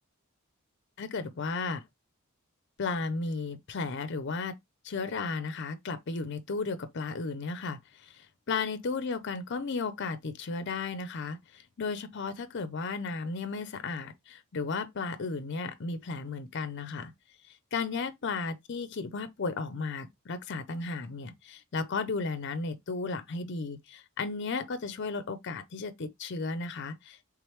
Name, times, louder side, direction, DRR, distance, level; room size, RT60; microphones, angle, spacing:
voice 1, 1.0-1.8 2.8-4.5 4.8-17.1 17.7-27.2, left 4 dB, 50° left, 0.5 m, -34 dB
3.5 x 3.2 x 3.0 m
head